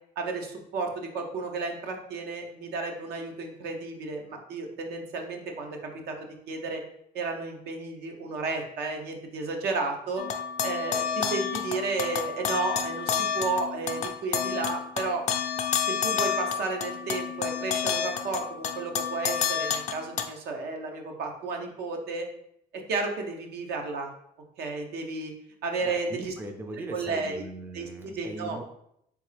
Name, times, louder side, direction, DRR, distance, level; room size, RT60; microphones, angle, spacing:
voice 1, 0.2-6.8 7.1-10.2 10.6-15.2 15.8-22.2 22.7-24.1 24.6-25.3 25.6-26.3 26.9-27.5 27.7-28.6, right 3 dB, 75° right, 3 dB, 0.8 m, -32 dB
sound 1, 10.2-20.2, left 7 dB, 45° left, 0.5 m, -30 dB
voice 2, 25.8-28.6, right 2 dB, 10° right, 4 dB, 0.5 m, -39 dB
3.7 x 3.4 x 3.3 m, 0.74 s
cardioid pair, 110°, 17 cm